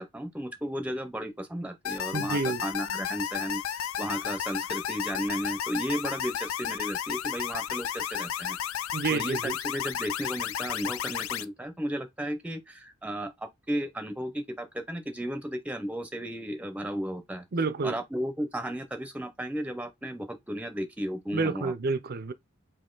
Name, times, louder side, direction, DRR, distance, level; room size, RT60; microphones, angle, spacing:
voice 1, 0.0-8.6 9.1-17.4 17.8-21.7, equal, 5° right, 0.7 m, -34 dB
sound 1, 1.8-11.4, left 9 dB, 80° left, 0.4 m, -33 dB
voice 2, 2.1-2.6 8.9-9.5 17.5-18.0 21.3-22.3, right 4 dB, 50° right, 0.6 m, -29 dB
4.2 x 2.7 x 3.8 m
head